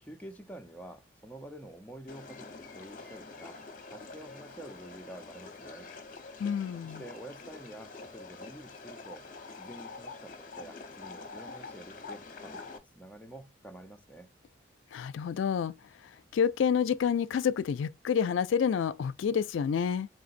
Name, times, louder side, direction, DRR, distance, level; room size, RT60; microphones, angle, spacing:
voice 1, 0.0-3.6 3.9-5.9 6.8-14.3, right 1 dB, 5° left, 0.5 m, -48 dB
sound 1, 2.1-12.8, left 3 dB, 45° left, 0.8 m, -46 dB
voice 2, 6.4-7.0 14.9-15.7 16.3-20.1, left 7 dB, 85° left, 0.3 m, -28 dB
3.8 x 3.8 x 2.5 m
head